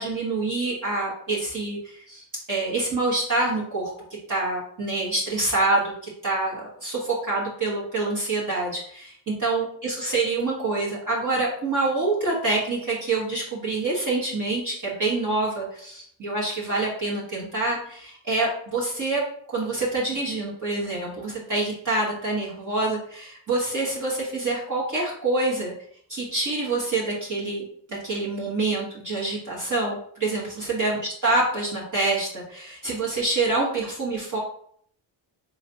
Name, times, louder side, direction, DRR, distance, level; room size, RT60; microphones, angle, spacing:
voice 1, 0.0-3.9 4.3-19.2 19.5-25.7 26.1-34.4, right 2 dB, 40° right, -6 dB, 1.3 m, -26 dB
4.2 x 3.1 x 2.7 m, 0.63 s
cardioid pair, 85°, 48 cm